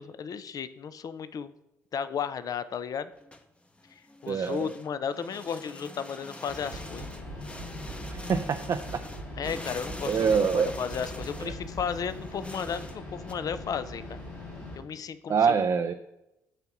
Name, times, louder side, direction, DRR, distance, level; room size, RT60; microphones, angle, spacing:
voice 1, 0.0-1.5 1.9-3.1 4.2-7.1 9.4-14.2 14.8-15.5, left 7 dB, 50° left, 14 dB, 0.5 m, -34 dB
sound 1, 3.1-13.3, left 1 dB, 15° left, 0.8 m, -44 dB
voice 2, 4.3-4.7 8.1-9.0 10.1-10.7 11.4-11.5 15.3-15.9, right 6 dB, 45° right, 8 dB, 0.4 m, -25 dB
sound 2, 6.5-14.8, left 2 dB, 90° left, 2.8 m, -42 dB
sound 3, 6.6-12.0, right 4 dB, 85° right, 1.1 m, -43 dB
8.1 x 2.9 x 5.8 m, 0.89 s
hypercardioid pair, 50°, 8 cm